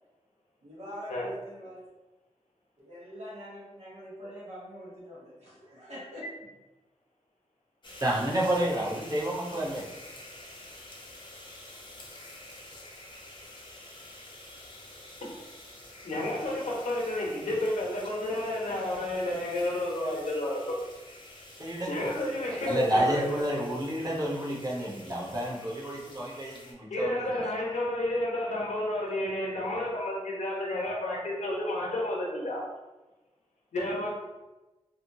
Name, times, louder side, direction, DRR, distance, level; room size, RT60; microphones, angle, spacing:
voice 1, 0.6-1.9 2.8-6.3, equal, 70° right, -7 dB, 1.1 m, -44 dB
sound 1, 7.8-26.7, left 1 dB, 40° left, 0.6 m, -48 dB
voice 2, 8.0-9.8 21.6-22.1 22.5-27.5, right 1 dB, 30° right, -5 dB, 0.8 m, -30 dB
voice 3, 16.0-20.9 21.9-23.3 26.9-32.6 33.7-34.1, left 1 dB, 85° left, -3 dB, 0.8 m, -31 dB
2.6 x 2.6 x 2.6 m, 1.1 s
wide cardioid pair, 110°, 12 cm